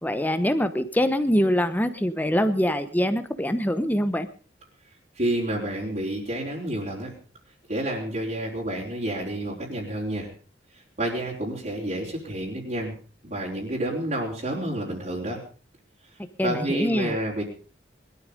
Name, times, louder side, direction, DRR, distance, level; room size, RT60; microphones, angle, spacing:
voice 1, 0.0-4.3 16.4-17.1, equal, 10° left, 10 dB, 1.0 m, -24 dB
voice 2, 5.2-7.1 7.7-10.3 11.0-12.9 13.2-15.4 16.4-17.4, right 1 dB, 45° right, -5 dB, 4.1 m, -29 dB
21.0 x 13.0 x 5.2 m, 0.39 s
head